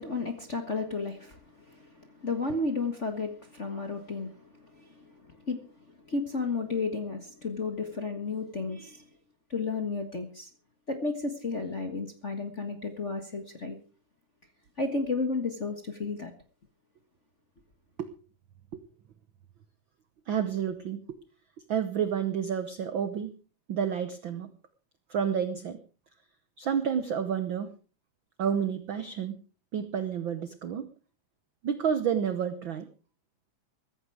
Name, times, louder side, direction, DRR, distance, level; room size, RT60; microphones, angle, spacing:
voice 1, 0.0-1.4 1.7-5.7 6.1-9.0 9.5-10.5 10.9-13.8 14.8-16.3, left 3 dB, 35° left, 6 dB, 1.2 m, -33 dB
voice 2, 20.3-21.2 21.7-23.3 23.7-24.5 25.1-25.8 26.6-27.7 28.4-29.3 29.7-30.9 31.6-32.9, right 8 dB, 80° right, 11 dB, 1.1 m, -30 dB
15.0 x 14.5 x 4.8 m, 0.37 s
omnidirectional pair, 3.7 m